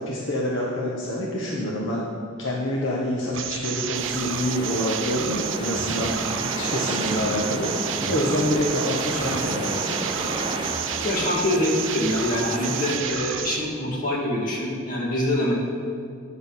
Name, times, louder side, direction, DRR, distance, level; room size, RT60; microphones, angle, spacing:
voice 1, 0.0-2.0 2.4-7.7 8.1-10.1, left 1 dB, 65° left, -3 dB, 1.1 m, -27 dB
sound 1, 3.3-13.7, right 9 dB, 65° right, 0.5 m, -31 dB
sound 2, 3.9-13.0, right 2 dB, 25° right, 0.6 m, -32 dB
sound 3, 5.7-6.4 6.9-7.2 7.9-8.5 9.1-10.1 10.5-10.9 11.5-11.8 12.5-13.1, right 1 dB, 40° right, 1.1 m, -37 dB
voice 2, 11.0-15.5, left 1 dB, 40° left, -4 dB, 2.1 m, -25 dB
9.5 x 6.2 x 5.6 m, 2.4 s
head